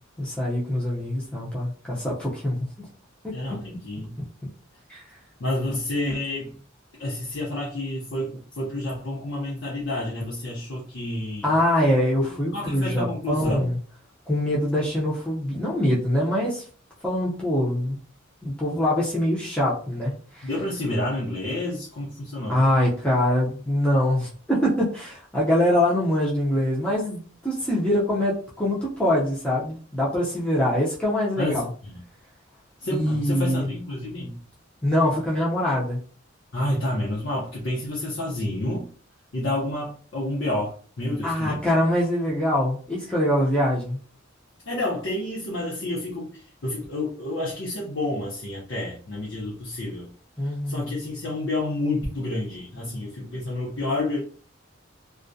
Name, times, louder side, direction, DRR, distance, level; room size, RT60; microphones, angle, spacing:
voice 1, 0.2-2.7 3.2-3.3 4.9-5.0 11.4-13.8 14.3-16.6 17.0-18.0 18.4-20.5 22.5-31.7 32.9-33.7 34.8-36.0 41.2-44.0 50.4-50.9, left 1 dB, 5° left, -6 dB, 0.5 m, -24 dB
voice 2, 3.3-4.2 5.4-6.5 7.0-11.6 12.5-13.7 20.4-22.7 31.4-32.0 32.8-34.4 36.5-38.9 39.3-41.6 44.7-50.1 50.4-54.2, left 1 dB, 65° left, -5 dB, 0.6 m, -29 dB
2.3 x 2.1 x 2.5 m, 0.42 s
head